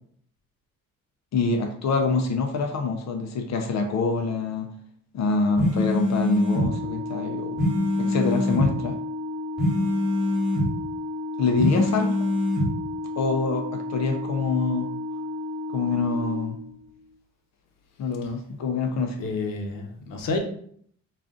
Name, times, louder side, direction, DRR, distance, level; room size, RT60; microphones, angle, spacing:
voice 1, 1.3-4.7 5.1-7.6 8.0-9.0 11.4-12.2 13.2-14.9 15.7-16.6 18.0-19.3, left 4 dB, 55° left, 4 dB, 0.5 m, -25 dB
sound 1, 5.6-6.7 7.6-8.7 9.6-10.7 11.6-12.7, left 1 dB, ahead, 1.2 m, -24 dB
Organ, 6.2-17.1, left 2 dB, 65° right, 0.5 m, -33 dB
voice 2, 19.2-20.4, left 3 dB, 85° left, 4 dB, 0.8 m, -29 dB
3.7 x 2.4 x 3.6 m, 0.63 s
cardioid pair, 140°, 32 cm